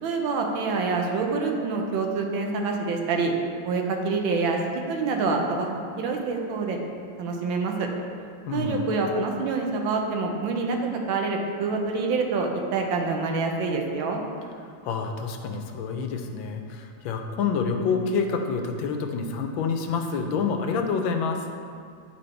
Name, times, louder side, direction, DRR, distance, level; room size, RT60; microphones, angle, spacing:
voice 1, 0.0-3.3 3.6-5.7 6.0-6.8 7.2-7.9 8.5-14.2, right 4 dB, 85° right, 2 dB, 1.5 m, -26 dB
voice 2, 8.5-8.9 14.8-21.5, left 5 dB, 90° left, 5 dB, 1.4 m, -27 dB
9.5 x 4.2 x 3.3 m, 2.2 s
omnidirectional pair, 2.1 m